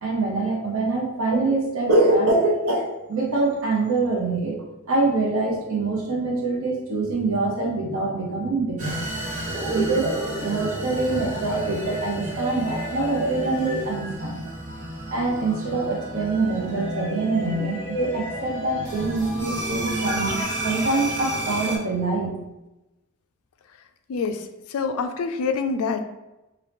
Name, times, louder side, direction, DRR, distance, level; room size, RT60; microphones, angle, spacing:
voice 1, 0.0-4.6 4.9-9.0 9.7-14.4 15.1-20.4 20.6-22.3, right 2 dB, 80° right, -2 dB, 0.9 m, -24 dB
sound 1, 8.8-21.8, right 1 dB, 35° right, 1.0 m, -30 dB
voice 2, 24.1-26.0, left 5 dB, 85° left, 7 dB, 0.4 m, -26 dB
2.9 x 2.7 x 3.4 m, 0.99 s
head